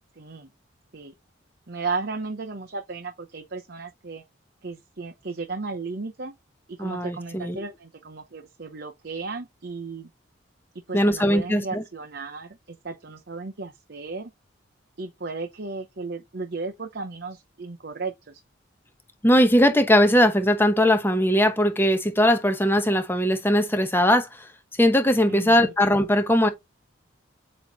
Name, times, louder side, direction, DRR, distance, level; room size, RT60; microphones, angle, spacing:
voice 1, 0.2-0.5 0.9-1.1 1.7-4.2 4.6-6.3 6.8-10.1 10.9-14.3 15.0-18.4 25.3-25.7, right 4 dB, 55° right, 0.8 m, -34 dB
voice 2, 6.8-7.6 10.9-11.8 19.2-24.5 24.8-26.5, equal, 10° left, 1.0 m, -20 dB
8.4 x 3.2 x 4.1 m
head